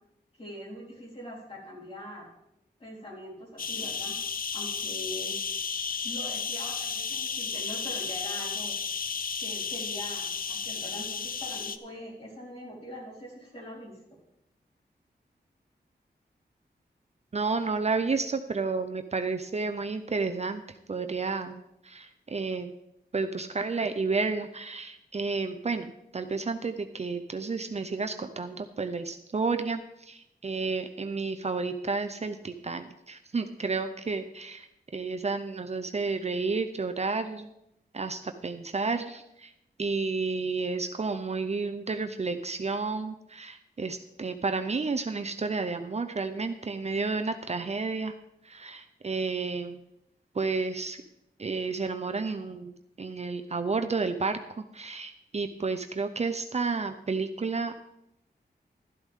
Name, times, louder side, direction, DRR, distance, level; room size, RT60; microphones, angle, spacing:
voice 1, 0.4-2.3 2.8-4.2 4.5-5.4 6.0-8.7 9.4-13.9, equal, 35° left, -4 dB, 4.4 m, -42 dB
sound 1, 3.6-11.8, left 6 dB, 55° left, 0.6 m, -33 dB
voice 2, 17.3-20.6 20.9-22.7 23.1-37.5 37.9-39.5 39.8-48.1 48.4-49.8 50.3-51.0 51.4-52.7 53.0-57.7, right 4 dB, 40° right, 8 dB, 0.6 m, -31 dB
12.5 x 11.5 x 3.6 m, 0.84 s
wide cardioid pair, 135°, 17 cm